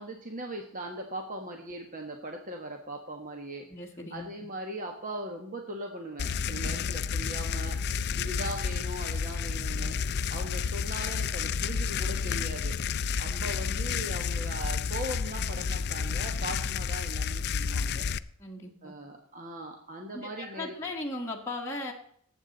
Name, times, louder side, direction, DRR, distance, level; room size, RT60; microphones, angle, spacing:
voice 1, 0.0-3.7 4.1-7.8 8.2-10.0 10.3-12.7 13.2-18.0 18.8-20.7, right 1 dB, 35° right, 3 dB, 1.4 m, -39 dB
voice 2, 3.7-4.3 13.2-13.5 18.4-18.9 20.1-21.9, left 2 dB, 10° left, -1 dB, 1.5 m, -37 dB
sound 1, 6.2-18.2, left 6 dB, 50° left, 0.4 m, -31 dB
19.0 x 8.3 x 4.0 m, 0.67 s
head